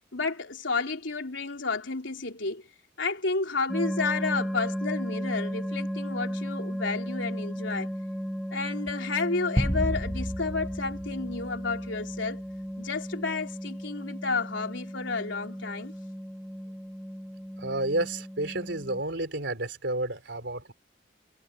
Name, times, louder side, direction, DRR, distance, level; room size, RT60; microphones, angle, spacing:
voice 1, 0.1-2.6 3.0-7.9 8.5-12.4 12.8-15.9, left 4 dB, 80° left, 3.5 m, -31 dB
sound 1, 3.7-19.0, equal, ahead, 3.2 m, -35 dB
sound 2, 9.6-12.1, equal, 15° left, 5.8 m, -31 dB
voice 2, 17.6-20.7, right 2 dB, 65° right, 3.9 m, -31 dB
head